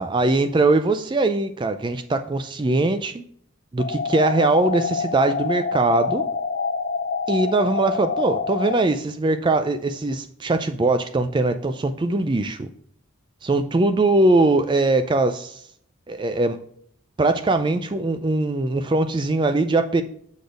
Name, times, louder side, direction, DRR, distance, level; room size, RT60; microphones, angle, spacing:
voice 1, 0.0-3.1 3.7-6.2 7.3-12.7 13.4-15.6 16.1-16.6 17.2-20.0, right 2 dB, 20° right, 9 dB, 0.3 m, -21 dB
sound 1, 3.8-8.8, left 4 dB, 45° left, 0.5 m, -26 dB
6.8 x 4.1 x 5.1 m, 0.64 s
head